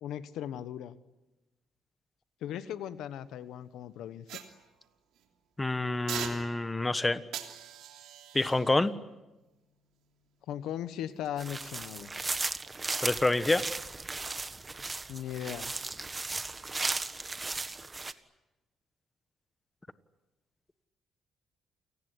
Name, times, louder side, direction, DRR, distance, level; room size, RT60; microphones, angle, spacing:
voice 1, 0.0-1.0 2.4-4.4 10.5-12.1 15.1-15.7, left 10 dB, 85° left, 13 dB, 1.3 m, -38 dB
sound 1, 4.3-5.3 6.1-6.9 7.3-10.5 11.1-11.3, right 10 dB, 85° right, 3.0 m, -44 dB
voice 2, 5.6-7.2 8.3-8.9 13.0-13.7, left 2 dB, 15° left, 12 dB, 1.4 m, -27 dB
sound 2, 11.4-18.1, right 3 dB, 25° right, 1.5 m, -36 dB
29.0 x 19.0 x 10.0 m, 1.0 s
cardioid pair, 90°, 0 cm